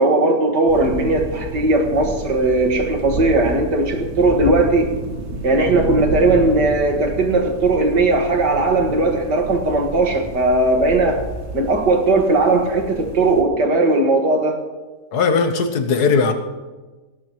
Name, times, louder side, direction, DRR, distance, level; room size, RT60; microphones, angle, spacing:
voice 1, 0.0-4.9 5.4-11.2 11.5-14.6, right 2 dB, 80° right, 3 dB, 2.4 m, -18 dB
sound 1, 0.7-13.4, right 2 dB, 45° right, 1.4 m, -30 dB
voice 2, 15.1-16.3, left 5 dB, 70° left, 7 dB, 1.6 m, -18 dB
18.5 x 17.5 x 3.1 m, 1.3 s
omnidirectional pair, 1.8 m